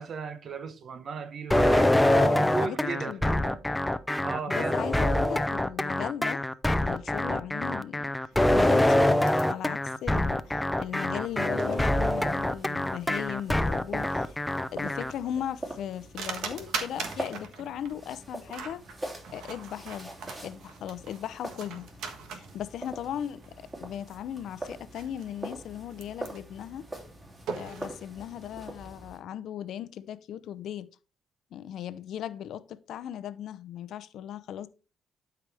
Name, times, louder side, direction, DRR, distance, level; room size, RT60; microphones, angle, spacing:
voice 1, 0.0-2.0 2.3-3.7 4.2-5.2, right 5 dB, 55° right, 1.1 m, -36 dB
sound 1, 1.5-15.1, left 1 dB, 5° left, 0.6 m, -25 dB
voice 2, 2.1-3.4 4.5-6.4 6.8-8.1 8.5-14.4 14.7-18.8 19.3-20.1 20.4-21.9 22.3-23.5 23.8-26.9 27.5-30.9 31.5-34.7, left 10 dB, 75° left, 0.6 m, -37 dB
sound 2, 8.3-27.9, right 5 dB, 85° right, 1.4 m, -43 dB
sound 3, 11.2-29.2, right 1 dB, 25° right, 3.5 m, -43 dB
12.0 x 4.9 x 3.4 m
cardioid pair, 90°, 0 cm